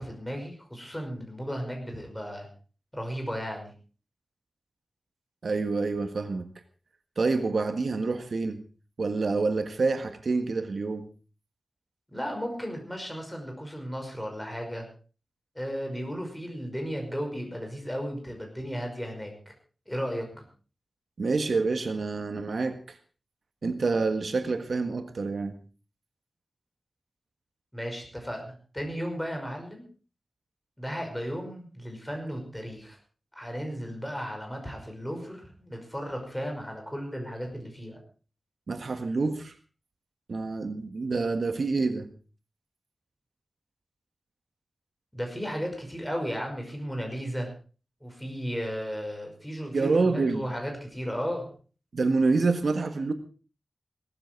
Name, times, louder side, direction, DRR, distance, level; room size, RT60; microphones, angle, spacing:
voice 1, 0.0-2.5 2.9-3.7 12.1-14.9 15.6-19.3 19.9-20.4 27.7-29.8 30.8-33.0 33.4-38.0 45.1-47.5 48.0-51.5, equal, 5° left, 5.6 m, -35 dB
voice 2, 5.4-6.5 7.2-8.6 9.0-11.1 21.2-23.0 23.6-25.5 38.7-39.5 40.3-42.1 49.7-50.5 51.9-53.1, right 3 dB, 70° right, 1.5 m, -27 dB
18.0 x 13.5 x 4.6 m
wide cardioid pair, 105°, 0 cm